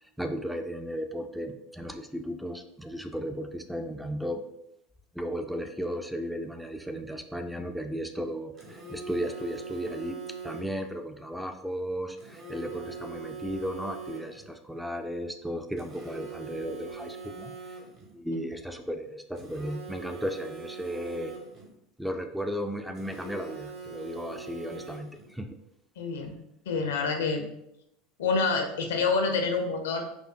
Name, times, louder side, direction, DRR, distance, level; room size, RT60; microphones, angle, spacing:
voice 1, 0.0-4.4 5.1-17.8 18.1-21.3 22.0-25.6, equal, 5° right, 6 dB, 0.3 m, -35 dB
Telephone, 8.6-10.9 12.2-14.5 15.8-18.1 19.4-21.7 22.9-25.3, right 5 dB, 40° right, 1.0 m, -42 dB
voice 2, 26.0-26.3 26.7-27.4 28.2-30.0, left 4 dB, 70° left, 5 dB, 0.5 m, -27 dB
4.3 x 2.5 x 2.3 m, 0.81 s
figure-of-eight pair, 75°, 0 cm